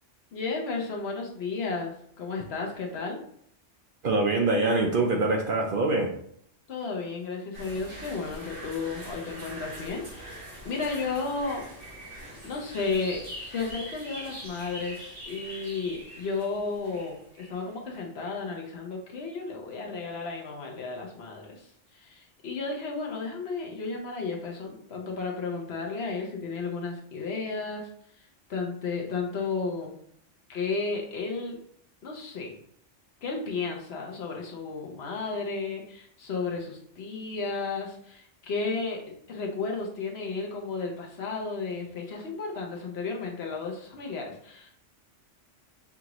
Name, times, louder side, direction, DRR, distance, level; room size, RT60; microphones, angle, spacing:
voice 1, 0.3-3.2 6.7-11.6 12.3-29.9 30.5-31.6 32.0-32.5 33.2-44.7, left 4 dB, 60° left, 0 dB, 1.0 m, -33 dB
voice 2, 4.0-6.1, right 2 dB, 55° right, 2 dB, 0.7 m, -24 dB
sound 1, 7.5-18.0, equal, 75° right, 2.0 m, -43 dB
5.8 x 2.5 x 2.9 m, 0.66 s
omnidirectional pair, 1.3 m